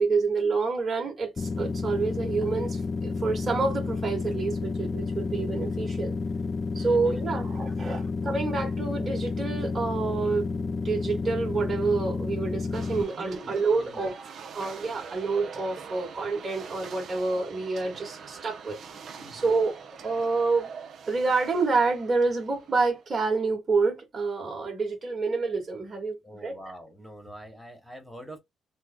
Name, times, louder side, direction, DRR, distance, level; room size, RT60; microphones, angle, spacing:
voice 1, 0.0-6.1 6.7-14.2 14.5-18.8 19.3-19.7 20.0-20.7 21.1-26.5, right 4 dB, 40° right, 1.3 m, -28 dB
sound 1, 1.4-13.0, left 4 dB, 35° left, 0.3 m, -31 dB
voice 2, 6.7-7.8 13.1-14.0 14.8-15.0 19.2-19.5 26.2-28.4, right 1 dB, ahead, 1.3 m, -46 dB
sound 2, 12.7-23.1, right 6 dB, 60° right, 0.6 m, -44 dB
3.1 x 2.2 x 3.6 m
cardioid pair, 90°, 0 cm